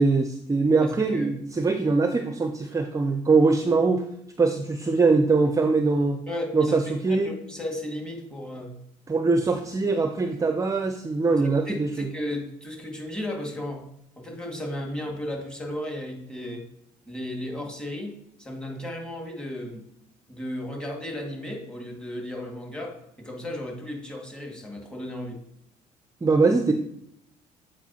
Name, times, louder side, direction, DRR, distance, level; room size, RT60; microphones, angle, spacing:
voice 1, 0.0-4.1 4.4-6.2 6.5-7.3 9.1-12.1 26.2-26.7, right 3 dB, 20° right, 7 dB, 0.5 m, -22 dB
voice 2, 0.8-1.3 6.3-8.8 11.7-13.9 14.2-16.6 17.1-19.9 20.3-25.4, left 1 dB, 5° left, 1 dB, 2.0 m, -34 dB
8.2 x 4.9 x 2.9 m, 0.74 s
supercardioid pair, 80°, 16 cm